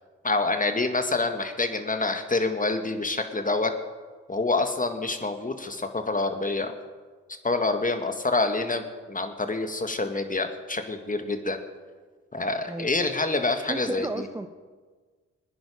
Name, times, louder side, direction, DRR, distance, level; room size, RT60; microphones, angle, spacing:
voice 1, 0.2-3.7 4.3-6.7 7.4-11.6 12.3-14.3, left 3 dB, 25° left, 7 dB, 1.9 m, -27 dB
voice 2, 13.7-14.5, right 2 dB, 10° right, 8 dB, 0.7 m, -33 dB
20.5 x 10.0 x 5.1 m, 1.5 s
hypercardioid pair, 40°, 33 cm